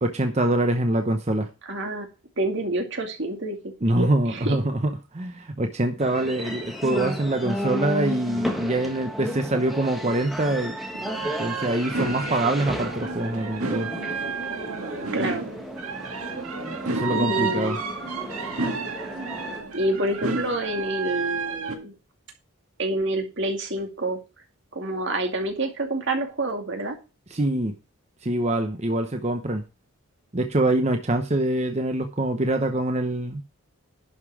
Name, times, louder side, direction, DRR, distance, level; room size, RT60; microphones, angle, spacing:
voice 1, 0.0-1.5 3.8-10.7 11.2-13.9 16.9-17.8 27.3-27.7 28.2-29.6 30.3-33.4, right 1 dB, 30° right, 5 dB, 0.8 m, -24 dB
voice 2, 1.7-2.1 2.4-3.6 4.0-4.6 15.1-15.4 17.1-17.8 19.7-21.9 22.8-24.2 24.7-27.0, right 1 dB, 55° right, 4 dB, 2.3 m, -27 dB
sound 1, 6.0-19.6, equal, ahead, 1.5 m, -34 dB
sound 2, 10.9-21.8, right 4 dB, 85° right, 1.9 m, -31 dB
11.5 x 5.5 x 4.8 m, 0.30 s
head